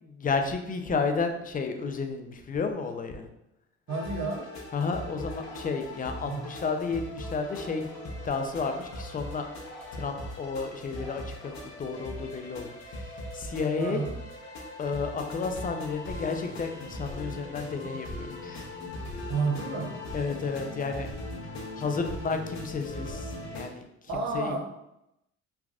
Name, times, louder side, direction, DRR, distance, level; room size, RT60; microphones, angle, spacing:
voice 1, 0.0-3.3 4.7-7.9 8.2-9.5 9.9-14.1 14.8-18.6 20.1-21.1 21.8-23.9 24.1-24.6, left 4 dB, 25° left, 5 dB, 0.4 m, -32 dB
sound 1, 3.9-23.6, left 2 dB, 60° left, 0.8 m, -40 dB
voice 2, 3.9-4.5 6.2-6.4 13.8-14.1 19.3-20.0 24.1-24.6, right 4 dB, 60° right, 1 dB, 0.8 m, -30 dB
Bird, 5.2-12.6, right 1 dB, ahead, 0.7 m, -51 dB
3.3 x 2.3 x 2.3 m, 0.83 s
supercardioid pair, 70°, 32 cm